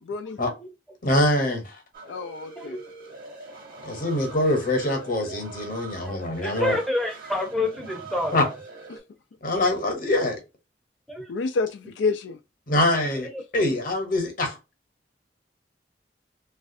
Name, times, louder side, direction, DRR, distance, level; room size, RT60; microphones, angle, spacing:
voice 1, 0.0-0.4 2.1-2.8 8.9-9.0 11.3-12.4, left 4 dB, 80° left, 0.4 m, -28 dB
voice 2, 1.0-1.8 3.8-6.8 8.3-8.4 9.4-10.4 12.7-14.6, left 1 dB, 50° left, 1.0 m, -24 dB
sound 1, 1.9-9.0, right 4 dB, 55° right, 1.0 m, -43 dB
voice 3, 6.0-8.5 11.1-11.3 13.2-13.4, left 2 dB, ahead, 0.6 m, -28 dB
3.2 x 2.4 x 2.6 m
head